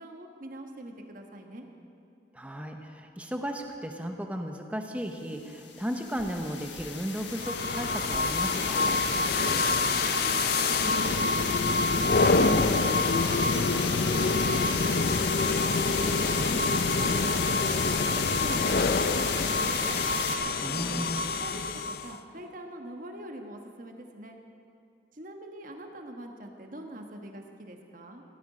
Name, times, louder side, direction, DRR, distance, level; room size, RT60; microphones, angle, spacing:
voice 1, 0.0-1.6 9.3-11.8 12.2-15.6 16.0-20.0 20.8-21.1 21.4-24.4 25.1-28.2, right 1 dB, 45° right, 3 dB, 1.3 m, -43 dB
voice 2, 2.3-9.0 20.6-21.3, equal, 5° right, 4 dB, 0.9 m, -35 dB
sound 1, 5.4-20.4, left 6 dB, 70° left, 1.4 m, -33 dB
sound 2, 7.4-22.2, left 3 dB, 55° left, 0.5 m, -26 dB
16.0 x 13.5 x 5.0 m, 2.5 s
head